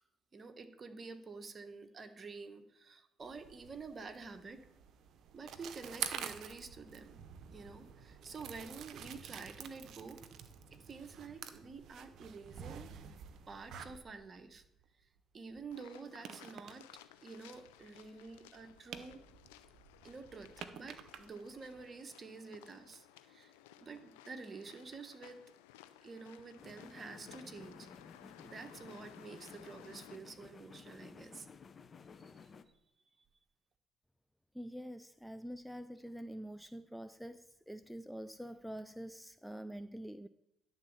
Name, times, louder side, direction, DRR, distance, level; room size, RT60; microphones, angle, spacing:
voice 1, 0.3-4.6 5.3-7.2 7.5-10.2 10.9-12.9 13.5-14.6 15.3-16.8 17.2-19.2 20.0-23.5 23.8-25.4 26.0-27.9 28.4-31.5 32.2-32.5, right 4 dB, 40° right, 8 dB, 1.1 m, -49 dB
sound 1, 3.2-14.8 15.6-15.7 16.3-16.8 18.0-21.8, right 8 dB, 65° right, 0.7 m, -48 dB
sound 2, 15.7-30.2, left 12 dB, 90° left, 0.5 m, -59 dB
sound 3, 26.6-32.6, left 5 dB, 45° left, 0.7 m, -55 dB
voice 2, 34.5-40.3, equal, ahead, 12 dB, 0.4 m, -46 dB
10.5 x 4.0 x 7.1 m, 0.83 s
hypercardioid pair, 60°, 0 cm